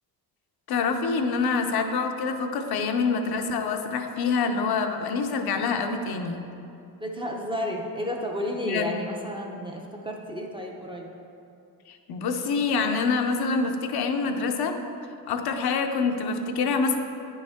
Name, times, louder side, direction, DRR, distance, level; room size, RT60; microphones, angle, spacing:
voice 1, 0.7-6.4 8.7-9.0 11.9-14.8 15.3-17.0, left 4 dB, 70° left, 5 dB, 0.7 m, -26 dB
voice 2, 7.0-11.1, equal, 15° right, 0 dB, 0.6 m, -32 dB
9.3 x 5.4 x 3.5 m, 2.6 s
wide cardioid pair, 140°, 39 cm